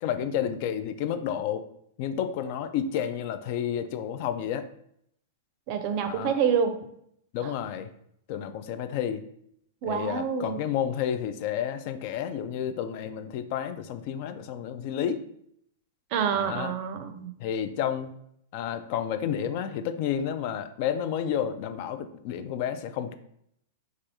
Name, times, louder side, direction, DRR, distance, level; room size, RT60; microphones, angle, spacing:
voice 1, 0.0-1.7 2.0-4.7 6.0-6.4 7.3-7.9 8.3-9.2 9.8-15.2 16.3-16.7 17.4-18.1 18.5-23.1, left 9 dB, 55° left, 10 dB, 0.3 m, -30 dB
voice 2, 5.7-6.8 7.4-7.5 9.8-10.6 16.1-17.3, right 7 dB, 50° right, 8 dB, 0.5 m, -27 dB
3.3 x 2.4 x 2.7 m, 0.70 s
hypercardioid pair, 110°, 0 cm